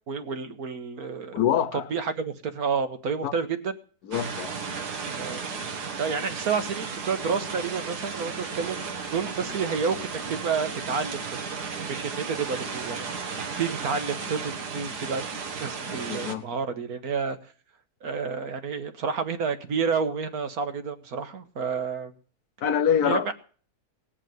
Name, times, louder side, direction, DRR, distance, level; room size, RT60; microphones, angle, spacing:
voice 1, 0.1-1.4 1.7-3.7 5.1-5.5 6.0-11.4 11.9-13.3 13.6-17.4 18.0-22.1 23.0-23.3, right 5 dB, 65° right, 1.7 m, -30 dB
voice 2, 1.3-1.9 3.2-3.3 4.0-4.6 16.1-16.4 22.6-23.3, left 9 dB, 75° left, 1.4 m, -25 dB
sound 1, 4.1-16.3, right 5 dB, 85° right, 2.0 m, -34 dB
18.5 x 6.6 x 9.4 m
omnidirectional pair, 1.7 m